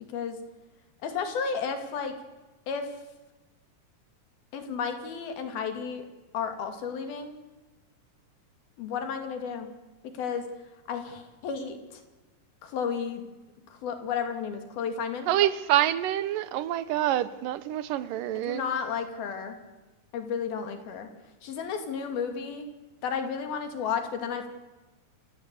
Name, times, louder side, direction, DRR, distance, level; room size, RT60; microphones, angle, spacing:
voice 1, 1.0-2.1 2.7-2.9 4.5-6.1 6.3-7.4 8.8-9.7 10.2-10.4 10.9-11.8 12.6-13.2 13.7-15.3 18.4-19.6 20.1-21.1 21.4-22.7 23.0-24.5, left 6 dB, 80° left, 4.3 m, -32 dB
voice 2, 15.3-18.6, right 13 dB, 75° right, 2.4 m, -26 dB
28.0 x 17.5 x 8.3 m
omnidirectional pair, 4.3 m